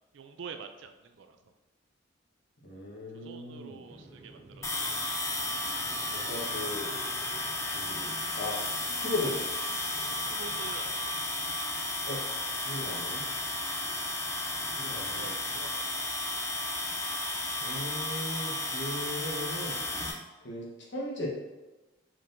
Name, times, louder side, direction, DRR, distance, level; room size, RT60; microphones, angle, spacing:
voice 1, 0.1-1.4 3.1-4.9 10.2-11.2 14.7-15.8, right 5 dB, 70° right, 7 dB, 0.4 m, -46 dB
voice 2, 2.6-3.8 6.1-6.9 7.7-8.1 8.3-8.6 9.0-9.4 12.0-12.2 12.6-13.2 14.8-15.4 17.6-19.8 20.4-21.3, left 1 dB, 60° left, -3 dB, 1.0 m, -37 dB
sound 1, 3.8-15.7, right 1 dB, 30° right, 0.8 m, -52 dB
sound 2, 4.6-20.1, left 2 dB, 15° left, 0.4 m, -33 dB
4.5 x 3.8 x 2.5 m, 1.1 s
head